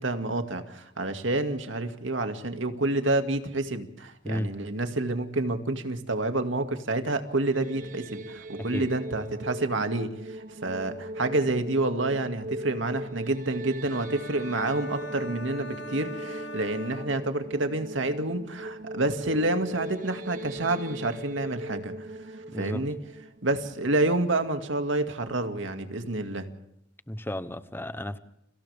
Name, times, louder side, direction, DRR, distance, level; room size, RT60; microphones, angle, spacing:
voice 1, 0.0-21.9 22.6-23.0 23.4-26.5, right 2 dB, 80° right, 7 dB, 2.3 m, -28 dB
sound 1, 7.3-24.5, right 1 dB, 45° right, 1.0 m, -39 dB
sound 2, 13.9-17.8, equal, 65° left, 2.0 m, -42 dB
voice 2, 22.5-22.8 27.1-28.2, left 1 dB, 10° left, 13 dB, 1.0 m, -33 dB
30.0 x 25.0 x 3.6 m, 0.78 s
head